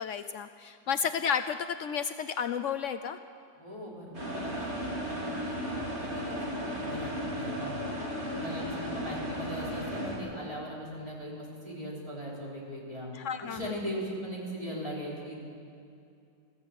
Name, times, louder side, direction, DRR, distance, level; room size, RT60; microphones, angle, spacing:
voice 1, 0.0-3.2 13.1-13.8, left 7 dB, 85° left, 10 dB, 0.6 m, -32 dB
voice 2, 3.6-5.6 5.9-7.9 8.3-13.1 13.4-15.4, equal, 20° right, -5 dB, 4.7 m, -39 dB
sound 1, 4.1-10.2, equal, 35° right, 4.0 m, -35 dB
21.0 x 15.0 x 8.4 m, 2.6 s
omnidirectional pair, 2.0 m